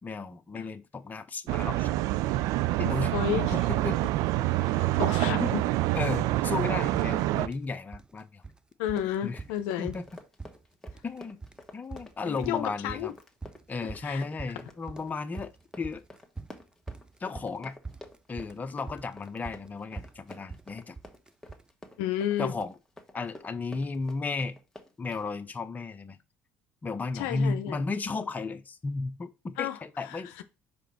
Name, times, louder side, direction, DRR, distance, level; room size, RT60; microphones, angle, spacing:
voice 1, 0.0-1.9 2.8-4.1 5.4-5.5 5.9-8.4 9.2-9.4 9.8-10.1 11.0-11.4 11.7-13.1 13.7-15.5 15.8-16.0 17.2-17.7 18.3-21.0 22.4-22.7 23.1-24.6 25.0-26.2 26.8-30.4, left 4 dB, 25° left, 0.9 m, -34 dB
sound 1, 1.5-7.5, right 16 dB, 70° right, 0.4 m, -26 dB
voice 2, 3.1-3.5 4.6-5.7 8.8-10.0 12.3-13.1 13.8-14.2 22.0-22.5 27.1-27.8 29.6-30.2, left 11 dB, 80° left, 0.7 m, -32 dB
sound 2, 3.6-3.7 4.0-4.7 5.0-5.7 5.9-6.2 6.5-6.6 6.9-7.7 7.9-8.6 8.9-21.7, right 4 dB, 15° right, 0.6 m, -44 dB
Run, 8.8-25.3, left 1 dB, 10° left, 1.5 m, -50 dB
5.1 x 5.1 x 4.4 m
hypercardioid pair, 70°, 6 cm